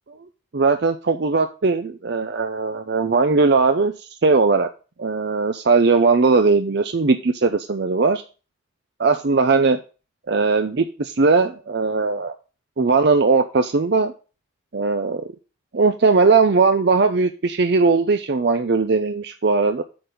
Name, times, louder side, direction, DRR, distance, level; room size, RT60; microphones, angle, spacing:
voice 1, 0.5-4.7 5.0-8.2 9.0-9.8 10.3-12.3 12.8-14.1 14.7-15.3 15.7-19.8, right 4 dB, 55° right, 7 dB, 0.6 m, -19 dB
8.6 x 4.0 x 6.6 m, 0.34 s
head